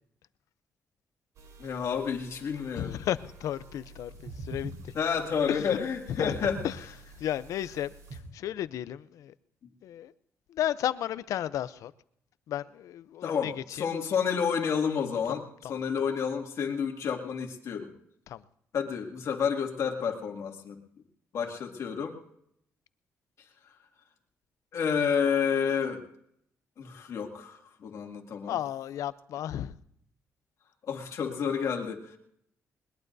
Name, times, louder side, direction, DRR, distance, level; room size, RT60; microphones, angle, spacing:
sound 1, 1.4-8.2, right 3 dB, 75° right, 4.3 m, -46 dB
voice 1, 1.6-2.9 4.9-6.6 13.2-17.9 18.7-20.8 21.3-22.2 24.7-26.0 26.8-28.6 30.8-32.2, left 7 dB, 65° left, 2.4 m, -30 dB
voice 2, 2.7-4.7 5.5-5.8 6.2-6.3 6.6-6.8 7.2-9.3 9.8-10.1 10.5-11.9 12.5-13.9 15.3-15.4 15.6-15.7 18.3-18.4 28.5-29.7, left 11 dB, 80° left, 0.6 m, -33 dB
21.0 x 21.0 x 2.7 m
cardioid pair, 110°, 6 cm